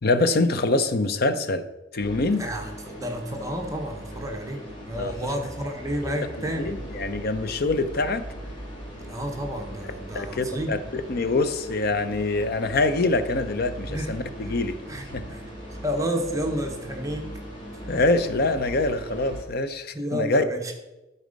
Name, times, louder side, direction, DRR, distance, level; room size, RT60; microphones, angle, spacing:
voice 1, 0.0-1.7 1.9-2.5 5.0-5.1 6.0-8.3 10.1-14.8 15.1-15.2 17.9-20.4, left 2 dB, 55° left, 11 dB, 0.6 m, -25 dB
sound 1, 2.0-19.4, equal, 25° left, 2.5 m, -39 dB
voice 2, 2.4-6.8 9.1-10.8 13.9-14.1 14.4-14.6 14.9-15.4 15.8-17.3 17.8-17.9 19.9-20.7, equal, 20° right, 3 dB, 0.9 m, -31 dB
12.5 x 4.2 x 5.2 m, 1.0 s
head